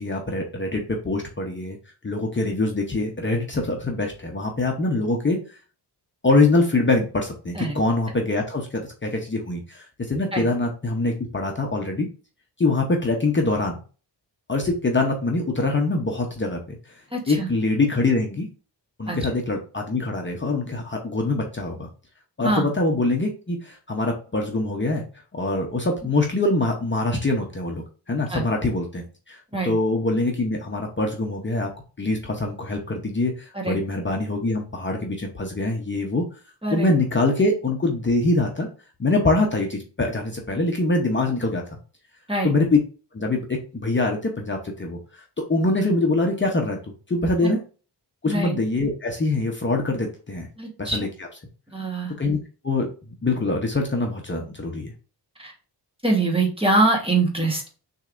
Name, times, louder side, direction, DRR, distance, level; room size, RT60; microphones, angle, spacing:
voice 1, 0.0-1.8 2.0-5.4 6.2-12.1 12.6-13.8 14.5-16.8 17.3-18.5 19.0-21.9 22.4-25.0 25.3-31.7 32.0-36.2 36.7-38.7 39.0-41.6 42.4-42.8 43.1-45.2 45.5-47.6 48.2-50.5 50.8-51.1 52.2-52.4 52.6-54.9, left 2 dB, 25° left, 1 dB, 0.8 m, -24 dB
voice 2, 17.1-17.5 19.1-19.2 22.4-22.7 28.3-28.4 29.5-29.7 33.5-33.8 36.6-36.9 42.3-42.5 47.4-47.6 48.2-48.6 50.6-51.0 51.7-52.1 55.4-55.5 56.0-57.7, right 2 dB, 15° right, 0 dB, 1.3 m, -24 dB
6.5 x 3.3 x 2.5 m, 0.37 s
wide cardioid pair, 120°, 42 cm